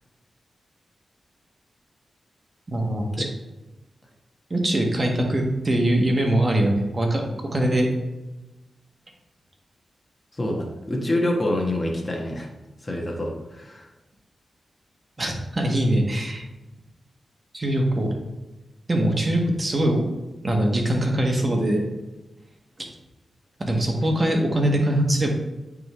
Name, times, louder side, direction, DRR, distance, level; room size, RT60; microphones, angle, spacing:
voice 1, 2.7-3.2 4.5-7.9 15.2-16.4 17.5-18.2 18.9-20.1 20.4-21.9 22.8-22.9 23.6-25.3, right 1 dB, 35° right, 1 dB, 1.5 m, -22 dB
voice 2, 10.3-12.5 12.8-13.9, left 1 dB, 30° left, 0 dB, 1.5 m, -26 dB
8.9 x 3.8 x 3.3 m, 1.1 s
cardioid pair, 65°, 0 cm